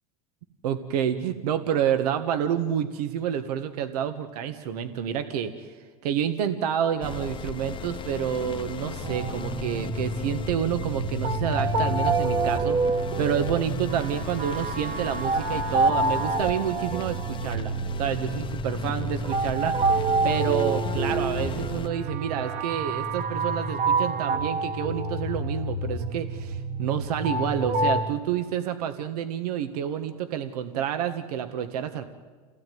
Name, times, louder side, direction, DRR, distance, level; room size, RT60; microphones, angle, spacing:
voice 1, 0.6-5.7 6.0-32.0, right 9 dB, 80° right, 8 dB, 1.6 m, -29 dB
sound 1, 7.0-21.9, left 6 dB, 25° left, 1.0 m, -37 dB
sound 2, 9.0-28.0, right 3 dB, 35° right, 1.6 m, -27 dB
28.5 x 17.0 x 9.4 m, 1.5 s
supercardioid pair, 115°, 20 cm